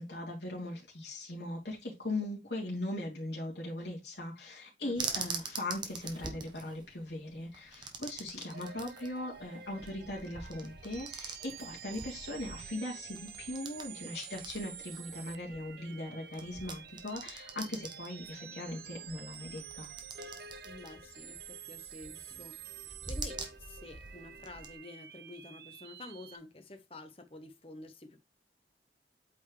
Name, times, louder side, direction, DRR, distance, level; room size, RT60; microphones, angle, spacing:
voice 1, 0.0-19.9, left 1 dB, 75° left, 2.7 m, -39 dB
voice 2, 4.8-5.2 20.6-22.5 22.9-28.2, left 2 dB, 30° left, 1.0 m, -49 dB
sound 1, 4.9-24.7, right 4 dB, 25° right, 1.1 m, -45 dB
sound 2, 8.5-26.4, right 8 dB, 60° right, 0.6 m, -49 dB
8.4 x 4.6 x 3.2 m
head